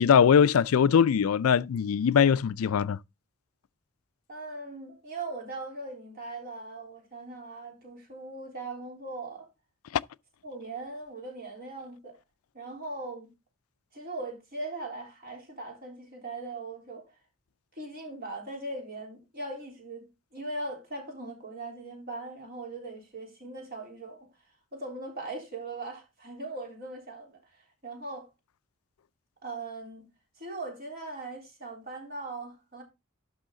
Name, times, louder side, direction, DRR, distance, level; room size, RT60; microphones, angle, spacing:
voice 1, 0.0-3.0, left 7 dB, 85° left, 0.4 m, -21 dB
voice 2, 4.3-9.5 10.4-12.1 12.5-13.3 13.9-17.0 17.8-24.3 24.7-28.3 29.4-30.1 30.4-32.8, right 2 dB, 45° right, 3.7 m, -40 dB
12.0 x 5.6 x 3.8 m
head